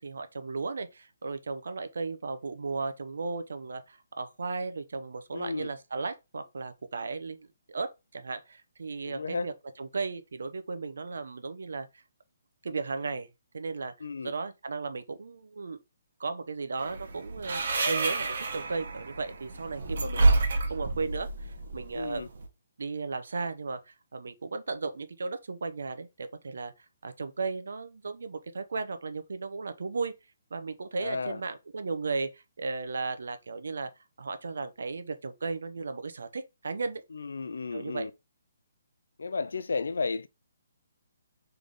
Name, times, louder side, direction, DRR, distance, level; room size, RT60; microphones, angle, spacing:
voice 1, 0.0-12.0 12.6-13.9 14.2-15.8 16.2-20.3 20.7-22.2 22.8-23.8 24.1-26.7 27.0-30.1 30.5-33.9 34.2-37.0 37.7-38.1, right 4 dB, 70° right, 0.7 m, -35 dB
voice 2, 5.3-5.7 9.0-9.5 14.0-14.3 21.9-22.3 30.9-31.4 37.1-38.1 39.2-40.3, left 4 dB, 80° left, 0.5 m, -33 dB
sound 1, 16.8-22.5, right 3 dB, 50° right, 1.1 m, -29 dB
3.5 x 3.3 x 3.8 m
hypercardioid pair, 175°, 0 cm